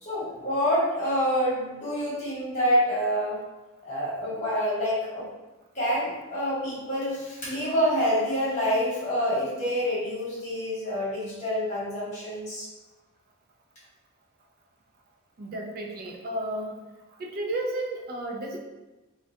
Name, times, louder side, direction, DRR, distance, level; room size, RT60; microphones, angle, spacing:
voice 1, 0.0-3.4 3.8-5.2 5.7-12.7, equal, 35° left, -8 dB, 1.1 m, -27 dB
voice 2, 15.4-16.7 17.2-18.6, right 1 dB, 45° right, 1 dB, 0.4 m, -32 dB
2.2 x 2.2 x 2.7 m, 1.1 s
head